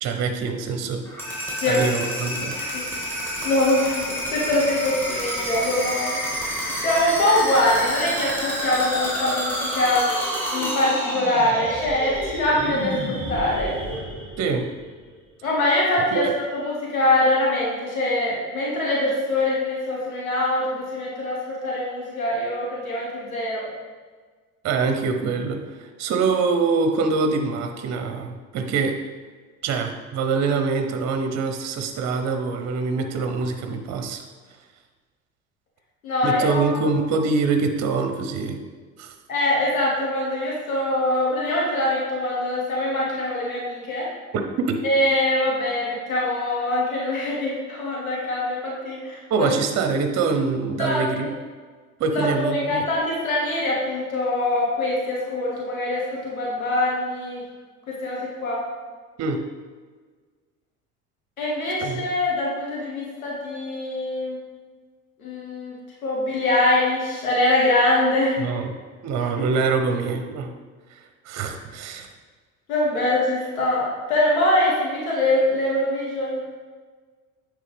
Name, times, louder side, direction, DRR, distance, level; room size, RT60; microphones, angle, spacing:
voice 1, 0.0-1.0 1.7-2.6 14.4-14.7 16.1-16.3 24.6-29.0 29.6-34.2 36.2-38.6 39.0-39.1 44.3-44.8 49.3-51.3 52.0-52.8 59.2-59.4 61.8-62.0 68.4-68.7 69.0-70.5 70.9-71.0 71.3-72.1, right 4 dB, 40° right, 6 dB, 0.7 m, -24 dB
sound 1, 1.0-14.9, equal, 5° left, 1.9 m, -29 dB
voice 2, 2.6-3.2 3.4-6.2 6.7-10.1 10.5-13.7 15.4-23.6 36.0-36.6 39.3-44.1 44.8-49.5 50.8-51.3 52.1-57.4 57.9-58.6 61.4-64.4 65.2-68.4 72.7-76.4, left 1 dB, 90° left, -4 dB, 1.3 m, -23 dB
9.1 x 3.4 x 3.4 m, 1.5 s
hypercardioid pair, 65°, 41 cm